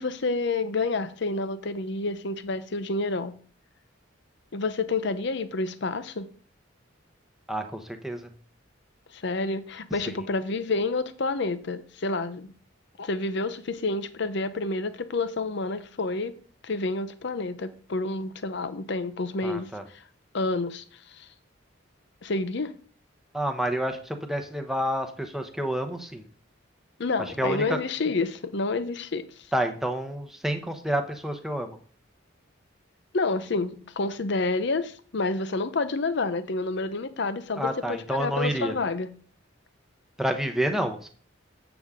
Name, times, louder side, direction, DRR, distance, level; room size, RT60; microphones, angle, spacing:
voice 1, 0.0-3.4 4.5-6.3 9.1-12.5 13.0-16.3 16.6-20.0 20.3-21.3 22.2-22.7 27.0-29.2 33.1-39.1, left 3 dB, 60° left, 0.7 m, -29 dB
voice 2, 7.5-8.3 19.4-19.8 23.3-26.2 27.4-27.6 29.5-31.8 37.6-38.7 40.2-41.1, right 1 dB, ahead, 0.8 m, -29 dB
7.8 x 7.0 x 3.6 m
head